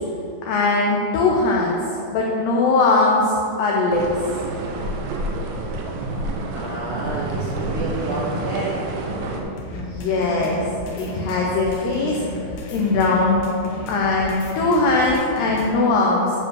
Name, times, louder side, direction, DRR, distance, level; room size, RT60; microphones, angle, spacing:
voice 1, 0.5-1.8 2.1-4.1 9.7-10.6 11.0-12.2 12.7-13.4 13.9-16.3, left 3 dB, 85° left, -2 dB, 2.3 m, -20 dB
sound 1, 3.9-9.4, right 2 dB, 90° right, 3.6 m, -28 dB
voice 2, 6.5-8.9, right 2 dB, 70° right, -9 dB, 1.9 m, -29 dB
sound 2, 9.6-15.7, left 1 dB, 70° left, 3.0 m, -33 dB
10.5 x 4.7 x 7.1 m, 2.6 s
omnidirectional pair, 6.0 m